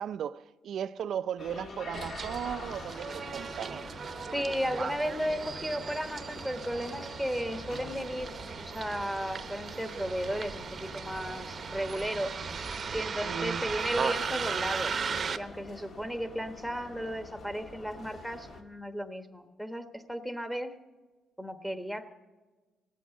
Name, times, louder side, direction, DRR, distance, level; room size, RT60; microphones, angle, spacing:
voice 1, 0.0-3.8 13.2-13.6, right 9 dB, 65° right, 0.5 m, -36 dB
sound 1, 1.4-18.6, left 3 dB, 55° left, 1.9 m, -47 dB
Bus, 1.9-15.4, right 5 dB, 40° right, 0.8 m, -37 dB
voice 2, 4.3-8.3 8.7-12.4 12.9-14.9 15.3-20.7 21.4-22.1, equal, 5° left, 1.2 m, -34 dB
17.0 x 8.4 x 7.0 m
cardioid pair, 105°, 0 cm